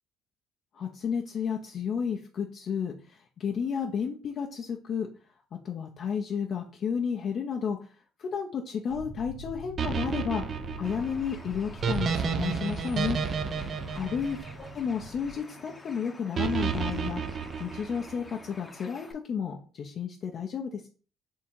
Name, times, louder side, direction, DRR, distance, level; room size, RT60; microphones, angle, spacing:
voice 1, 0.7-5.1 5.5-7.9 8.2-13.2 13.9-17.2 17.6-20.9, left 7 dB, 50° left, 1 dB, 0.6 m, -32 dB
sound 1, 8.9-15.3, equal, 80° right, 1.7 m, -45 dB
sound 2, 9.8-15.1 16.4-18.3, right 6 dB, 45° right, 0.5 m, -31 dB
Bird, 10.8-19.1, left 2 dB, 15° left, 0.8 m, -49 dB
3.6 x 2.8 x 4.4 m, 0.37 s
cardioid pair, 95°, 0 cm